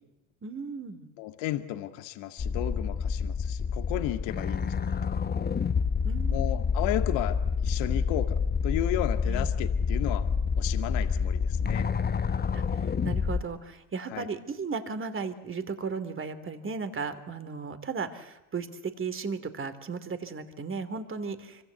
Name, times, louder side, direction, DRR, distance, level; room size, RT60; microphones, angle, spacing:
voice 1, 0.4-1.1 6.0-6.7 9.3-9.5 12.5-21.6, right 5 dB, 25° right, 11 dB, 2.8 m, -36 dB
voice 2, 1.2-4.9 6.3-7.4 7.6-8.3 8.6-10.3 10.6-11.9 14.1-14.3, left 14 dB, 70° left, 7 dB, 2.1 m, -33 dB
sound 1, 2.4-13.4, left 6 dB, 20° left, 0.9 m, -28 dB
25.5 x 24.5 x 8.1 m, 0.95 s
supercardioid pair, 100°, 47 cm